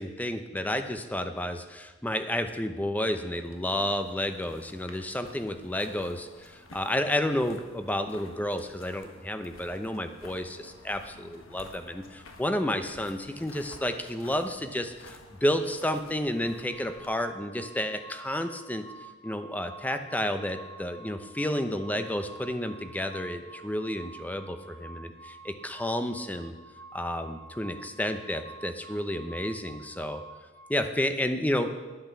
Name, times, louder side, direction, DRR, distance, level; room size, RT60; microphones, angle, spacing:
voice 1, 0.0-18.8 19.2-26.5 26.9-30.2 30.7-31.7, left 1 dB, 10° left, 8 dB, 0.7 m, -31 dB
sound 1, 3.3-17.2, left 2 dB, 80° left, 1.5 m, -52 dB
sound 2, 16.4-30.8, right 2 dB, 50° right, 0.8 m, -49 dB
10.5 x 9.2 x 6.8 m, 1.3 s
head